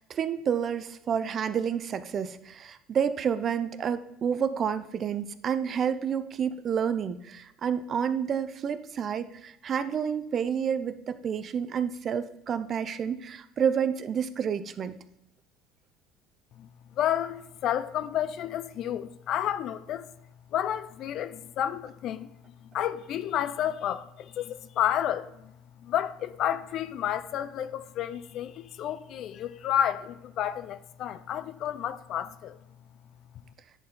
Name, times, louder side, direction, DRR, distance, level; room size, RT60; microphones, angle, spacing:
voice 1, 0.0-15.0, right 7 dB, 40° right, 0.5 m, -29 dB
voice 2, 17.0-20.1 20.5-22.3 22.6-25.5 25.8-32.6, left 10 dB, 55° left, 0.4 m, -31 dB
9.9 x 4.3 x 3.7 m
supercardioid pair, 100°, 0 cm